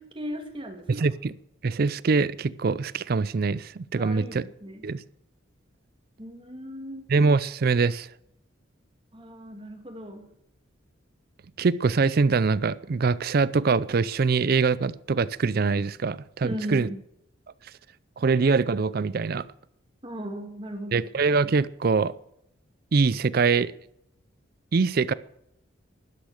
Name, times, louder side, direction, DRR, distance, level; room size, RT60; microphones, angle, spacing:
voice 1, 0.0-1.1 4.0-4.9 6.2-7.0 9.1-10.2 16.4-17.0 20.0-21.0, equal, 25° right, 3 dB, 2.7 m, -37 dB
voice 2, 0.9-1.3 1.6-4.4 4.8-5.0 7.1-8.1 11.6-16.9 18.2-19.4 20.9-22.1 22.9-23.7 24.7-25.1, right 4 dB, 50° right, 18 dB, 0.4 m, -23 dB
12.5 x 12.0 x 6.5 m, 0.76 s
head